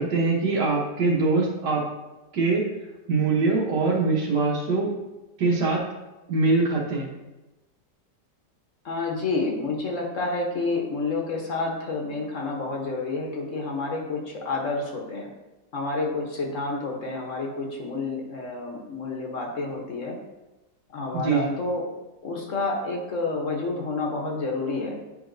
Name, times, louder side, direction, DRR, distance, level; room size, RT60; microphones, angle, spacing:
voice 1, 0.0-1.9 2.3-2.7 3.1-4.9 5.4-5.9 6.3-7.1 21.1-21.5, right 3 dB, 75° right, -2 dB, 1.7 m, -23 dB
voice 2, 8.8-15.3 15.7-20.2 20.9-21.8 22.2-25.0, left 3 dB, 50° left, 0 dB, 1.2 m, -29 dB
8.8 x 5.0 x 2.6 m, 1.0 s
omnidirectional pair, 1.9 m